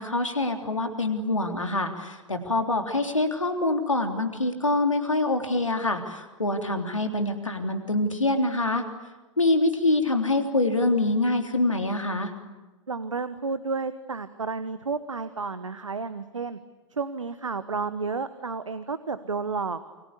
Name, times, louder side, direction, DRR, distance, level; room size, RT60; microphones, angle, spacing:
voice 1, 0.0-8.8 9.4-12.3, left 2 dB, 85° left, 6 dB, 3.5 m, -25 dB
voice 2, 12.9-16.6 16.9-19.8, right 4 dB, 80° right, 13 dB, 1.3 m, -31 dB
28.5 x 24.5 x 8.5 m, 1.1 s
figure-of-eight pair, 85°, 16 cm